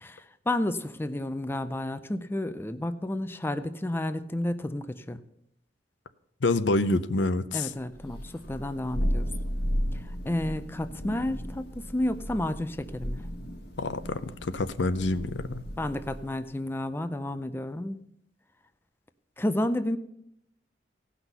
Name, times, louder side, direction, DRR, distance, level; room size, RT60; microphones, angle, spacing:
voice 1, 0.0-5.2 7.5-9.2 10.3-13.2 15.8-18.0 19.4-20.0, left 1 dB, 10° left, 10 dB, 0.4 m, -31 dB
voice 2, 6.4-7.7 13.8-15.6, left 2 dB, 85° left, 12 dB, 0.6 m, -27 dB
Thunder, 7.9-16.4, equal, 65° left, 1.5 m, -34 dB
17.0 x 6.0 x 5.5 m, 0.76 s
head